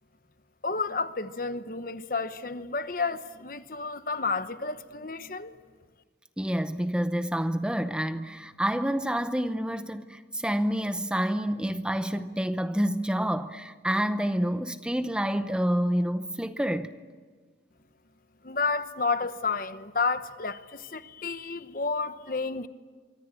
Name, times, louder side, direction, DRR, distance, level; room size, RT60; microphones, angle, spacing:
voice 1, 0.6-5.5 18.4-22.7, left 4 dB, 50° left, 1.0 m, -31 dB
voice 2, 6.4-16.9, equal, 5° right, 0.7 m, -28 dB
25.0 x 24.5 x 9.0 m
head